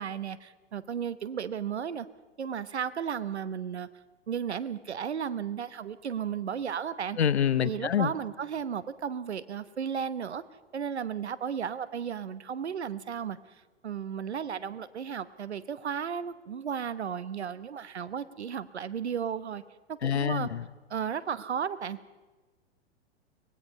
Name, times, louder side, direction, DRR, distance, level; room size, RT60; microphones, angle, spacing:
voice 1, 0.0-2.1 2.4-3.9 4.3-7.2 7.6-10.4 10.7-13.4 13.8-19.6 19.9-20.5 20.9-22.0, right 7 dB, 75° right, 16 dB, 1.1 m, -34 dB
voice 2, 7.2-8.1 20.0-20.6, left 9 dB, 75° left, 18 dB, 1.0 m, -26 dB
24.5 x 19.5 x 5.4 m, 1.3 s
figure-of-eight pair, 100°, 33 cm